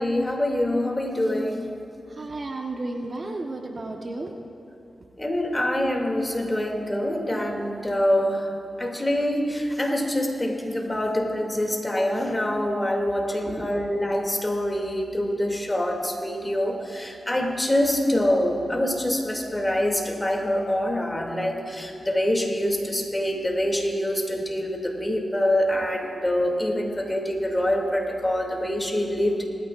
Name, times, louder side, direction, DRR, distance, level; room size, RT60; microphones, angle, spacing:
voice 1, 0.0-1.7 5.2-8.5 8.8-29.4, left 1 dB, 20° left, 1 dB, 2.7 m, -25 dB
voice 2, 2.2-4.3 13.5-13.7, right 2 dB, 50° right, 2 dB, 1.2 m, -33 dB
19.5 x 14.0 x 2.5 m, 2.9 s
cardioid pair, 45°, 0 cm